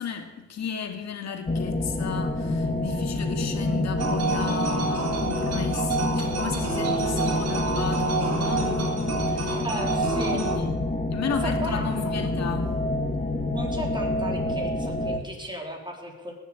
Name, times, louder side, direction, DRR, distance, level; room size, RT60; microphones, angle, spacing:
voice 1, 0.0-9.6 10.0-10.8 11.1-12.8, left 7 dB, 60° left, 2.5 m, -34 dB
sound 1, 1.5-15.2, left 2 dB, 30° left, 2.5 m, -28 dB
sound 2, 4.0-10.6, right 4 dB, 55° right, 3.9 m, -29 dB
voice 2, 9.6-10.4 11.4-11.9 13.5-16.3, right 1 dB, 15° right, 3.8 m, -35 dB
19.0 x 7.3 x 8.8 m
cardioid pair, 90°, 30 cm